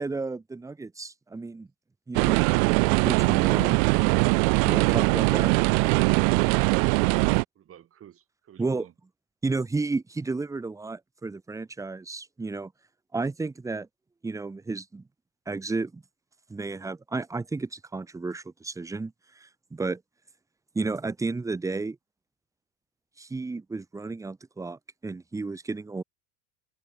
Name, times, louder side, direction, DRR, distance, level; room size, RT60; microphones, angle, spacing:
voice 1, 0.0-1.7 2.1-2.4 3.0-3.8 4.6-5.5 8.6-8.9 9.4-12.7 13.1-13.9 14.2-15.0 15.5-16.0 16.5-20.0 20.7-22.0 23.2-26.0, right 3 dB, 5° right, 0.9 m, -32 dB
sound 1, 2.1-7.4, right 35 dB, 65° right, 0.7 m, -21 dB
voice 2, 6.4-8.9, right 10 dB, 30° right, 3.7 m, -51 dB
supercardioid pair, 145°, 45 cm